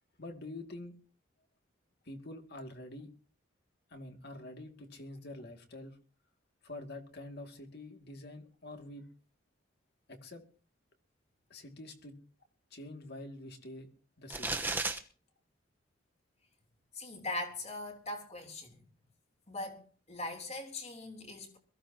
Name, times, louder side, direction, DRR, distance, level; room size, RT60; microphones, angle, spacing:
voice 1, 0.2-1.0 2.0-3.1 3.9-6.0 6.6-9.1 10.1-10.4 11.5-12.2 12.7-13.9 14.2-14.6, left 2 dB, 55° left, 2.5 m, -46 dB
sound 1, 14.3-15.0, right 3 dB, 10° right, 1.1 m, -33 dB
voice 2, 16.9-18.8 19.5-21.6, left 2 dB, 35° left, 3.4 m, -41 dB
22.0 x 15.5 x 3.0 m
head